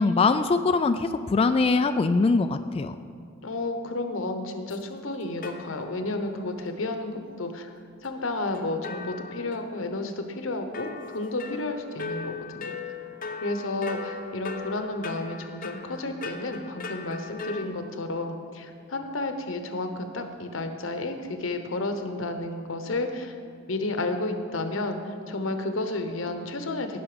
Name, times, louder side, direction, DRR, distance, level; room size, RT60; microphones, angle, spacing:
voice 1, 0.0-3.0, left 3 dB, 30° left, 9 dB, 0.3 m, -22 dB
voice 2, 3.4-7.7 8.0-12.8 13.4-23.4 23.7-27.0, left 2 dB, 85° left, 7 dB, 1.1 m, -31 dB
sound 1, 4.7-4.8 5.4-6.2 6.6-6.7 8.5-10.1 10.7-17.7, left 4 dB, 45° left, 0.9 m, -39 dB
17.0 x 5.9 x 5.1 m, 2.4 s
head